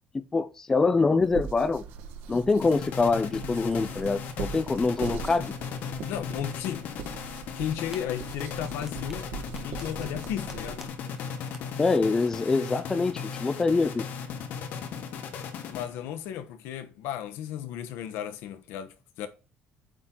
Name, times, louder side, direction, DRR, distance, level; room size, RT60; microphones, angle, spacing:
voice 1, 0.1-1.8 2.3-5.5 11.8-14.0, left 4 dB, 15° left, 0.4 m, -25 dB
sound 1, 1.2-10.9, right 6 dB, 85° right, 1.5 m, -41 dB
sound 2, 2.6-16.2, left 6 dB, 55° left, 1.3 m, -37 dB
voice 2, 6.1-6.9 7.6-9.3 9.6-10.8 15.7-19.3, left 10 dB, 90° left, 1.0 m, -34 dB
sound 3, 7.7-10.9 11.2-11.3 11.5-11.6, right 3 dB, 10° right, 0.8 m, -47 dB
8.7 x 3.9 x 4.3 m
cardioid pair, 175°, 4 cm